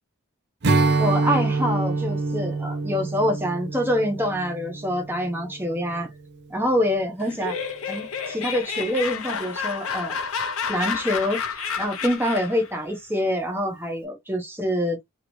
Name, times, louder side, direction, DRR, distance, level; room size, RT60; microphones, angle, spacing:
Strum, 0.6-6.1, right 3 dB, 50° right, 0.5 m, -26 dB
voice 1, 1.0-6.1 6.5-7.5 7.9-10.2 10.7-15.0, equal, 10° right, 1.1 m, -26 dB
Laughter, 7.2-12.7, left 6 dB, 70° left, 0.8 m, -30 dB
2.8 x 2.8 x 3.0 m
head